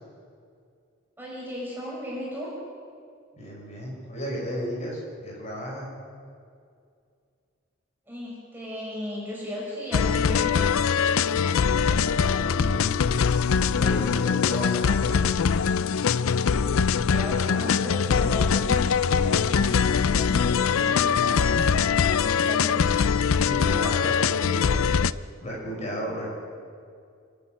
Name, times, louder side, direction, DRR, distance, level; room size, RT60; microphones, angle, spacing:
voice 1, 1.2-2.5 8.1-10.7 16.5-23.1, equal, 10° right, -5 dB, 5.9 m, -36 dB
voice 2, 3.3-6.0 11.3-13.0 13.6-15.3 23.4-24.9 25.4-26.3, equal, 35° left, -3 dB, 6.0 m, -34 dB
sound 1, 9.9-25.1, left 6 dB, 80° left, 0.5 m, -22 dB
27.5 x 10.5 x 9.2 m, 2.3 s
head